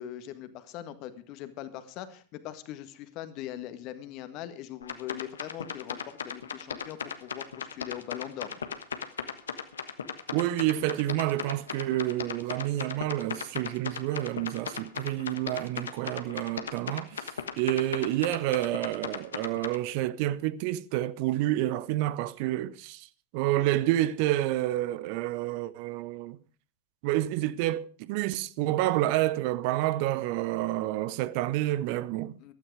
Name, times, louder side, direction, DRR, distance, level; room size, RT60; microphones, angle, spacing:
voice 1, 0.0-8.6 32.4-32.5, left 12 dB, 40° left, 1.7 m, -41 dB
sound 1, 4.8-19.8, left 7 dB, 70° left, 1.3 m, -37 dB
voice 2, 10.3-23.1 23.3-26.4 27.0-32.4, right 15 dB, 45° right, 0.6 m, -29 dB
15.0 x 13.0 x 4.8 m
figure-of-eight pair, 90°, 0 cm